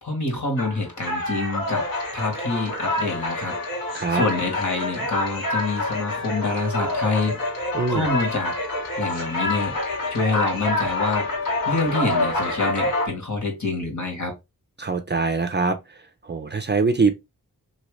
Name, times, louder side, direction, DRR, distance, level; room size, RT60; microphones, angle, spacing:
voice 1, 0.0-1.9 2.1-3.6 4.1-7.4 7.9-8.5 9.0-9.8 10.1-11.3 11.6-14.3, left 3 dB, 55° left, 1.6 m, -26 dB
sound 1, 0.6-13.1, left 2 dB, 75° left, 1.6 m, -27 dB
voice 2, 7.7-8.1 14.8-15.8 16.2-17.1, right 4 dB, 30° right, 0.5 m, -23 dB
2.9 x 2.8 x 3.1 m
wide cardioid pair, 80°, 36 cm